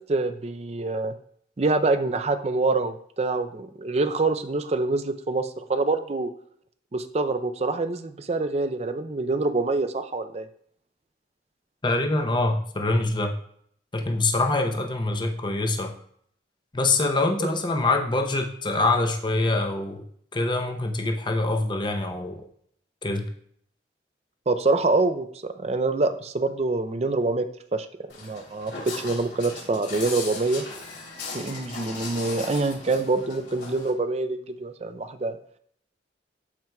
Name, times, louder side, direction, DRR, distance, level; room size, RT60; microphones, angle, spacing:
voice 1, 0.1-1.1 1.6-6.3 6.9-10.5 17.4-17.5 24.5-25.3 25.6-27.5 27.7-27.9 28.2-28.7 29.0-30.6 31.3-35.4, right 3 dB, 35° right, 10 dB, 0.4 m, -25 dB
voice 2, 11.8-13.3 13.9-15.9 16.7-20.0 20.3-22.4 23.0-23.3, left 2 dB, 25° left, 3 dB, 0.7 m, -24 dB
Walk footsteps, 28.1-33.9, left 4 dB, 75° left, 3.2 m, -38 dB
13.0 x 4.5 x 2.3 m, 0.65 s
head